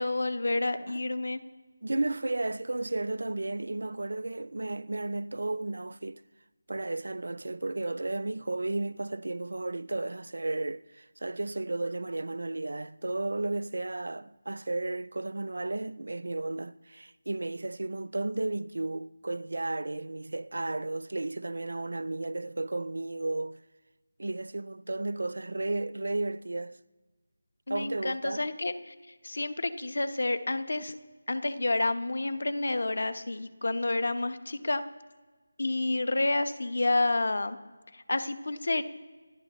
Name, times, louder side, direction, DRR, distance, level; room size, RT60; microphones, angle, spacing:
voice 1, 0.0-1.4 27.7-28.9 29.2-30.9 31.3-34.8 35.6-37.6 37.9-38.8, left 2 dB, 65° left, 1.1 m, -29 dB
voice 2, 1.8-6.2 6.7-23.6 24.2-26.8 27.7-28.5, right 2 dB, 75° right, 0.5 m, -33 dB
27.0 x 11.0 x 3.1 m
figure-of-eight pair, 175°, 0 cm